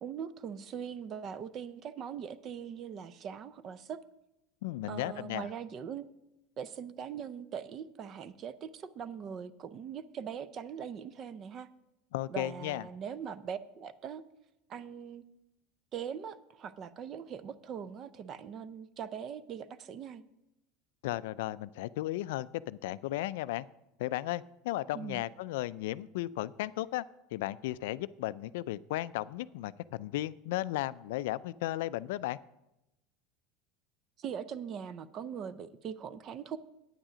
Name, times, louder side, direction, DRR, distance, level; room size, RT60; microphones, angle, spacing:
voice 1, 0.0-4.0 4.9-6.1 6.6-11.7 12.3-14.2 14.7-15.2 15.9-20.2 24.9-25.2 34.2-36.6, right 7 dB, 30° right, 15 dB, 0.5 m, -41 dB
voice 2, 4.6-5.5 12.1-12.8 21.0-23.7 24.0-27.0 27.3-32.4, left 16 dB, 80° left, 17 dB, 0.3 m, -35 dB
9.1 x 8.9 x 5.0 m, 0.91 s
supercardioid pair, 160°, 0 cm